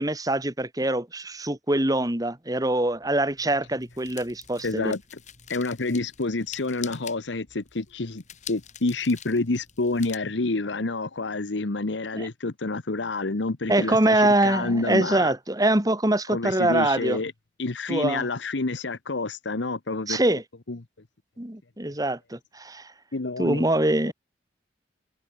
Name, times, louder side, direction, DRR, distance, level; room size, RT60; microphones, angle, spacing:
voice 1, 0.0-4.9 12.1-12.3 13.7-17.2 17.9-18.3 20.1-20.4 21.4-22.9 23.4-24.1, right 1 dB, 20° right, 2.1 m, -24 dB
sound 1, 2.6-10.2, left 9 dB, 40° left, 5.1 m, -46 dB
voice 2, 4.6-5.0 5.5-8.2 8.5-15.3 16.3-17.3 17.6-20.2 20.7-20.8 23.1-23.7, left 3 dB, 85° left, 1.1 m, -28 dB
head